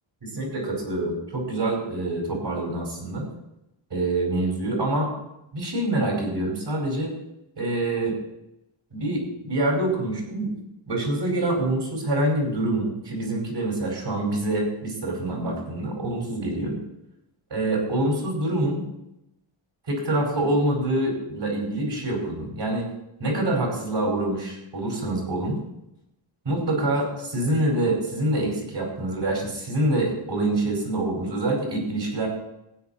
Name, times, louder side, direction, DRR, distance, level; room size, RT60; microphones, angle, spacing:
voice 1, 0.2-3.3 3.9-5.1 5.5-7.1 7.6-8.2 8.9-10.5 10.9-16.8 17.5-18.8 19.9-22.9 23.2-25.6 26.5-32.3, right 1 dB, 55° right, 0 dB, 5.2 m, -26 dB
15.5 x 9.7 x 4.3 m, 0.87 s
wide cardioid pair, 155°, 50 cm